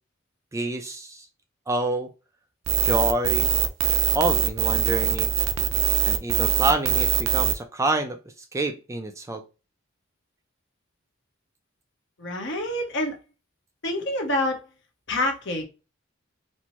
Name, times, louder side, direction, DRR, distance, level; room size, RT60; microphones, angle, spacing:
voice 1, 0.5-1.3 1.7-2.1 2.8-3.5 4.1-5.3 6.0-8.2 8.5-9.4, right 2 dB, 15° right, 0.3 m, -27 dB
sound 1, 2.7-7.5, right 9 dB, 85° right, 0.4 m, -22 dB
voice 2, 12.2-13.2 13.8-14.6 15.1-15.6, left 1 dB, 60° left, 0.9 m, -27 dB
4.3 x 2.0 x 2.9 m
head